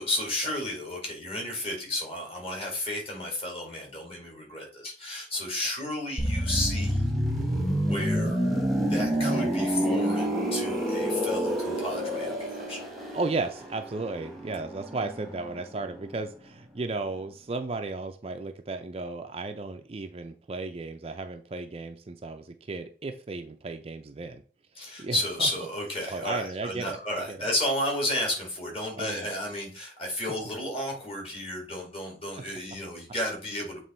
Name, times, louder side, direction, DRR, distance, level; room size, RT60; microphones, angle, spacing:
voice 1, 0.0-7.0 7.8-8.4 8.8-12.8 24.8-33.8, left 1 dB, 35° left, 0 dB, 2.3 m, -32 dB
sound 1, 6.2-15.8 16.1-16.3, equal, ahead, 1.2 m, -28 dB
voice 2, 13.1-24.4 24.8-25.5 26.1-27.5 29.0-29.3, right 3 dB, 35° right, 6 dB, 0.5 m, -34 dB
7.5 x 3.1 x 4.3 m, 0.42 s
head